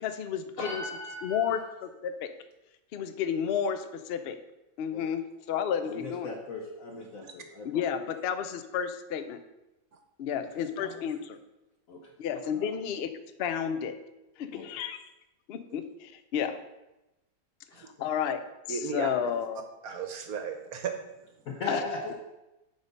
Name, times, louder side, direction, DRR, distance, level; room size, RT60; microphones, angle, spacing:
voice 1, 0.0-0.8 1.2-2.3 2.9-4.4 4.8-6.3 7.6-9.4 10.2-11.4 12.2-13.1 13.4-14.0 14.4-15.0 15.5-16.6 17.8-19.6 21.7-21.8, left 8 dB, 90° left, 10 dB, 0.5 m, -32 dB
voice 2, 0.6-1.6 4.9-5.0 5.8-7.9 10.4-10.5 10.7-11.0 11.9-12.1 12.6-12.7 14.5-14.7 18.0-18.1 21.4-22.1, left 2 dB, 60° left, 1 dB, 1.1 m, -38 dB
voice 3, 18.7-19.1 19.8-20.9, right 6 dB, 65° right, 6 dB, 1.2 m, -35 dB
8.9 x 3.7 x 5.2 m, 0.98 s
omnidirectional pair, 1.8 m